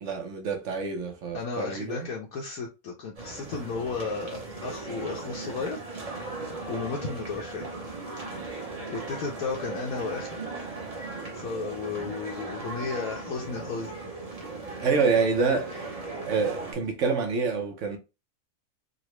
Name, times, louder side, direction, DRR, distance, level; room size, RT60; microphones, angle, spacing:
voice 1, 0.0-2.1 14.8-16.0 16.2-18.0, right 5 dB, 60° right, 0.9 m, -27 dB
voice 2, 1.3-5.8 6.7-7.7 8.9-10.4 11.3-13.9, left 4 dB, 70° left, 1.1 m, -34 dB
sound 1, 3.2-16.7, right 3 dB, 30° right, 0.8 m, -38 dB
3.9 x 2.1 x 3.0 m
omnidirectional pair, 1.7 m